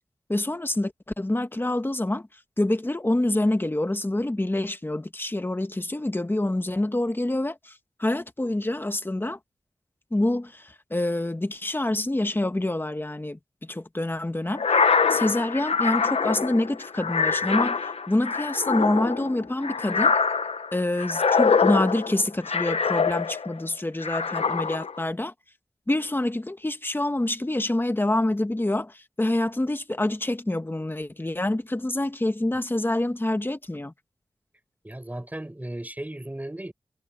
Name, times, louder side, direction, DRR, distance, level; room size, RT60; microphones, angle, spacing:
voice 1, 0.3-2.3 2.6-9.4 10.1-14.8 15.1-20.1 20.7-25.3 25.9-33.9, left 1 dB, 20° left, 1.5 m, -26 dB
sound 1, 14.5-23.6 24.0-25.0, left 5 dB, 75° left, 0.8 m, -24 dB
voice 2, 34.8-36.7, right 1 dB, 15° right, 4.2 m, -35 dB
wide cardioid pair, 85°, 11 cm